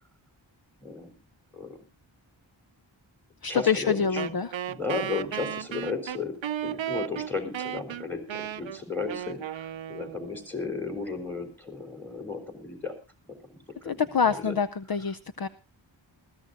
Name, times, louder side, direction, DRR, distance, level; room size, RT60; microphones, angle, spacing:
voice 1, 0.8-1.1 1.5-1.8 3.5-4.4 4.7-6.3 6.6-12.9 13.5-14.6, left 4 dB, 5° left, 7 dB, 3.7 m, -34 dB
voice 2, 3.4-4.5 13.9-15.5, left 6 dB, 50° left, 12 dB, 0.7 m, -26 dB
Wind instrument woodwind instrument, 4.2-10.5, right 10 dB, 70° right, 0.6 m, -35 dB
20.5 x 14.5 x 2.6 m, 0.31 s
wide cardioid pair, 80°, 47 cm